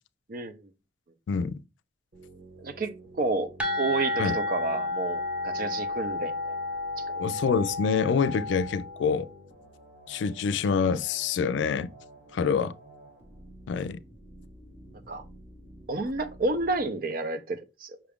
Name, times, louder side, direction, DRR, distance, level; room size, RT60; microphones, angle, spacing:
voice 1, 1.3-1.6 4.2-4.4 7.2-9.3 10.1-11.9 12.3-12.7 13.7-14.0, left 6 dB, 90° left, 0.3 m, -26 dB
sound 1, 2.1-16.9, right 1 dB, 75° right, 1.6 m, -50 dB
voice 2, 2.6-2.9 3.2-3.5 3.8-6.6 7.0-7.2 12.6-12.7 15.1-15.2 15.9-18.0, right 3 dB, 50° right, 0.5 m, -30 dB
sound 2, 3.6-9.2, left 2 dB, 5° right, 0.7 m, -32 dB
5.7 x 2.4 x 3.5 m
head